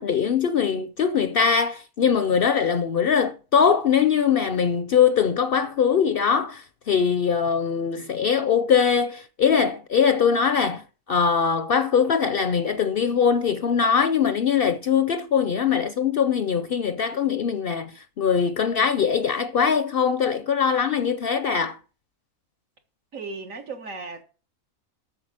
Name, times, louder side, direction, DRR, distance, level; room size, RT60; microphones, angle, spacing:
voice 1, 0.0-21.8, left 7 dB, 55° left, 0.6 m, -22 dB
voice 2, 23.1-24.2, right 4 dB, 70° right, 1.9 m, -35 dB
8.4 x 6.7 x 7.4 m
omnidirectional pair, 1.4 m